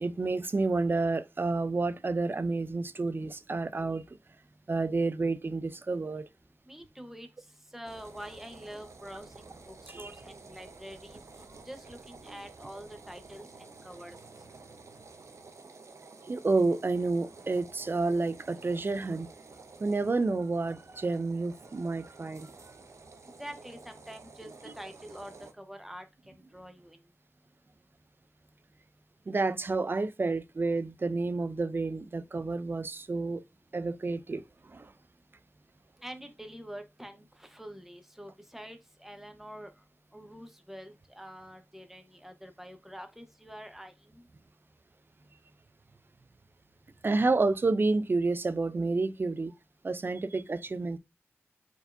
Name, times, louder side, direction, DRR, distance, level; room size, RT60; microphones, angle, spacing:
voice 1, 0.0-4.2 4.7-6.3 9.9-10.1 16.3-19.3 19.8-22.5 24.7-24.8 29.3-33.4 33.7-34.9 47.0-49.5 49.8-51.0, right 3 dB, 45° right, 0.5 m, -30 dB
voice 2, 6.6-7.3 7.7-11.2 11.6-14.2 23.2-25.3 25.6-26.0 26.5-27.0 36.0-39.7 40.1-44.2, equal, 5° right, 1.0 m, -46 dB
sound 1, 7.8-25.5, right 3 dB, 80° right, 0.8 m, -51 dB
4.5 x 4.3 x 2.6 m
wide cardioid pair, 85°, 5 cm